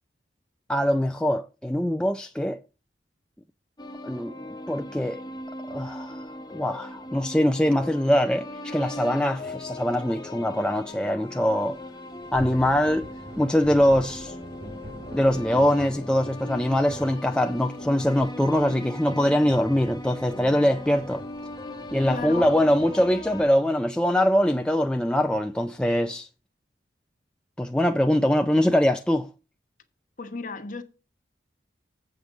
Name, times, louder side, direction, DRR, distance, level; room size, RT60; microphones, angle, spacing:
voice 1, 0.7-2.6 4.0-4.3 4.7-5.2 5.7-6.2 6.5-11.8 12.3-13.1 13.4-14.3 15.1-21.2 21.9-26.3 27.6-29.3, equal, 5° left, 0.4 m, -23 dB
sound 1, 3.8-23.4, left 1 dB, 20° left, 1.0 m, -39 dB
sound 2, 11.6-11.7 11.9-22.9, right 1 dB, 55° right, 3.3 m, -44 dB
voice 2, 22.1-22.5 30.2-30.8, left 3 dB, 45° left, 1.1 m, -34 dB
7.8 x 5.2 x 7.1 m
head